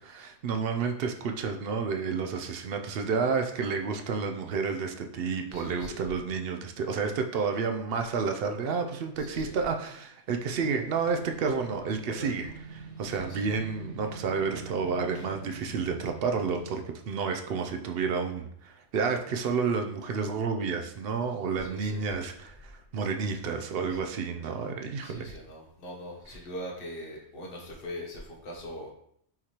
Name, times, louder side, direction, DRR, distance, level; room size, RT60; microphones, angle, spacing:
voice 1, 0.0-25.3, right 5 dB, 60° right, 5 dB, 0.7 m, -30 dB
voice 2, 5.5-6.0 9.2-9.6 12.2-12.3 13.2-13.5 21.6-22.0 25.0-28.9, equal, 50° left, 0 dB, 1.1 m, -41 dB
sound 1, 10.5-16.9, right 4 dB, 35° right, 1.1 m, -45 dB
5.7 x 3.1 x 2.9 m, 0.69 s
omnidirectional pair, 1.3 m